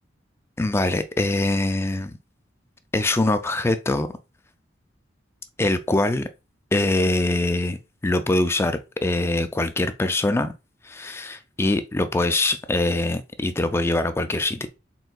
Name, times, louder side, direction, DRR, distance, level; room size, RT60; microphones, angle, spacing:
voice 1, 0.6-2.2 2.9-4.1 5.6-6.3 6.7-7.8 8.0-10.5 10.8-14.7, left 2 dB, 15° left, 0.3 m, -23 dB
4.3 x 3.7 x 2.3 m
head